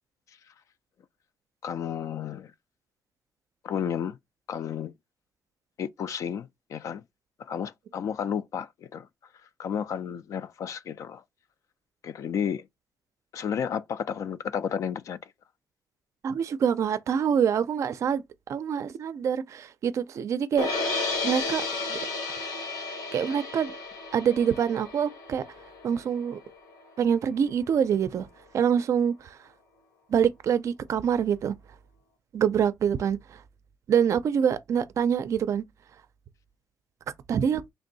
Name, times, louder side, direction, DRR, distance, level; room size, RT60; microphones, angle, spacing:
voice 1, 1.6-2.5 3.6-4.2 4.5-4.9 5.8-7.0 7.4-9.1 9.6-11.2 12.0-12.7 13.3-15.3, left 8 dB, 55° left, 0.3 m, -32 dB
voice 2, 16.2-18.2 18.5-21.0 21.2-21.6 21.9-22.0 23.1-23.7 24.1-25.4 25.8-26.4 27.0-28.3 28.5-29.4 30.1-31.5 32.3-33.4 33.9-35.6 37.3-37.6, right 8 dB, 50° right, 0.4 m, -25 dB
sound 1, 20.6-26.7, left 3 dB, 85° left, 1.6 m, -33 dB
3.3 x 2.6 x 3.9 m
wide cardioid pair, 180°, 7 cm